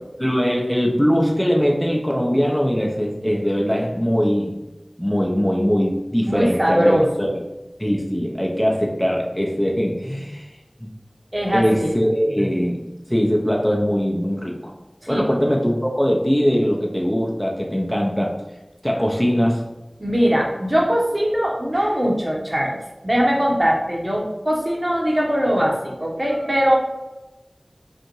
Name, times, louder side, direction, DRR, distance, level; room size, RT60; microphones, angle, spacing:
voice 1, 0.2-4.5 5.0-7.3 7.8-10.5 10.8-10.9 11.5-12.8 13.1-14.7 15.1-18.3 18.8-19.6, equal, 10° left, -1 dB, 0.6 m, -21 dB
voice 2, 6.3-7.0 11.3-11.9 15.0-15.3 20.0-22.8 23.0-26.8, equal, 40° right, -2 dB, 1.0 m, -21 dB
5.2 x 2.5 x 3.0 m, 1.0 s
wide cardioid pair, 45°, 0 cm